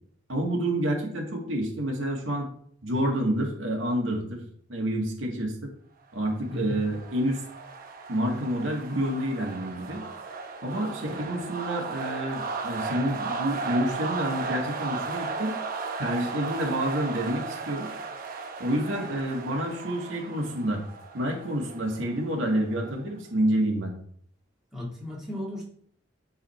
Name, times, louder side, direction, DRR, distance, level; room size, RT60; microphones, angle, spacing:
voice 1, 0.3-2.5 2.8-4.4 4.7-5.7 6.1-7.4 8.1-10.0 10.6-15.5 16.0-17.9 18.6-20.8 21.1-23.9, right 1 dB, 70° right, 0 dB, 2.0 m, -28 dB
sound 1, 6.3-23.0, right 4 dB, 45° right, 0.9 m, -36 dB
voice 2, 24.7-25.6, left 1 dB, 5° right, -5 dB, 1.9 m, -34 dB
9.7 x 4.1 x 4.3 m, 0.62 s
head